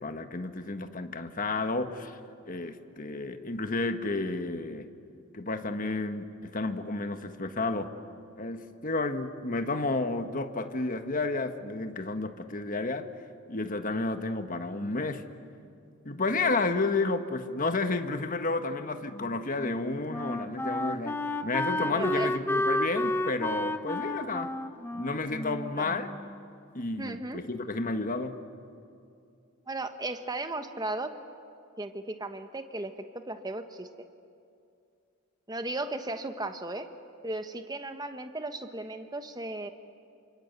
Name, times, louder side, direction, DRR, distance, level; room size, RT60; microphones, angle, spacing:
voice 1, 0.0-2.2 2.5-4.9 5.3-7.9 8.4-13.1 13.5-15.2 16.0-24.5 24.9-26.1 26.7-28.4, left 3 dB, 40° left, 7 dB, 1.5 m, -31 dB
Wind instrument woodwind instrument, 19.1-26.4, left 1 dB, 10° left, 0.8 m, -32 dB
voice 2, 21.8-22.3 25.8-25.9 27.0-27.4 29.7-31.1 31.8-33.9 35.5-36.9 37.2-39.7, right 2 dB, 20° right, 7 dB, 1.2 m, -36 dB
28.5 x 25.0 x 8.2 m, 2.5 s
head